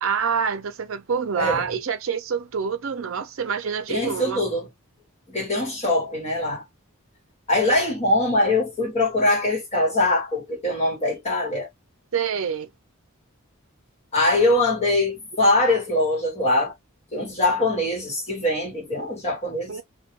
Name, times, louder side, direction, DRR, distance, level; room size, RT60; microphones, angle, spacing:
voice 1, 0.0-4.4 12.1-12.7 19.7-19.8, right 6 dB, 65° right, 0.5 m, -26 dB
voice 2, 3.9-4.7 5.3-6.6 7.5-11.7 14.1-16.7 17.1-19.8, left 2 dB, 30° left, 1.2 m, -22 dB
2.2 x 2.2 x 2.9 m
head